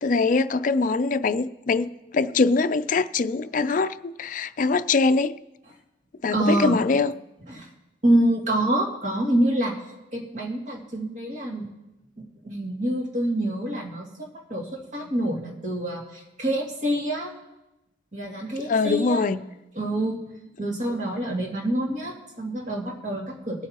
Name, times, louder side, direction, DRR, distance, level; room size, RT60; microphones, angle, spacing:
voice 1, 0.0-5.3 6.2-7.1 18.7-19.4, left 4 dB, 45° left, 0.4 m, -23 dB
voice 2, 6.3-6.8 7.5-7.7 8.0-9.7 10.1-11.7 12.4-17.3 18.1-19.3 19.7-20.2 20.6-23.7, right 1 dB, 45° right, 2.5 m, -26 dB
23.0 x 9.1 x 3.0 m
head